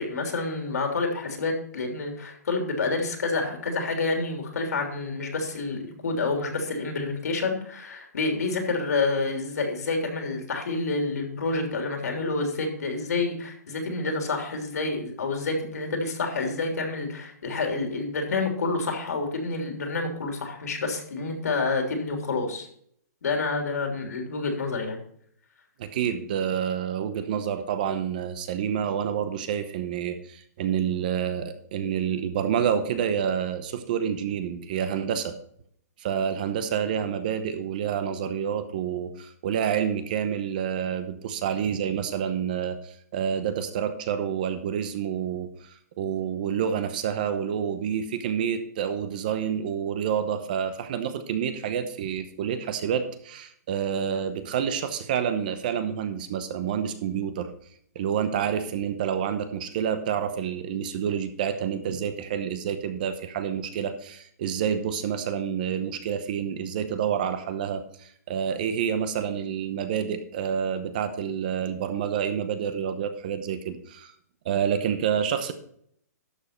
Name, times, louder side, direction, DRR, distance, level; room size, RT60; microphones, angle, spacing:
voice 1, 0.0-22.7 23.2-25.0, left 3 dB, 70° left, 3 dB, 3.2 m, -28 dB
voice 2, 25.8-35.3 36.0-57.5 57.9-74.1 74.4-75.5, right 8 dB, 30° right, 10 dB, 0.8 m, -28 dB
12.0 x 6.9 x 4.4 m, 0.65 s
hypercardioid pair, 175°, 9 cm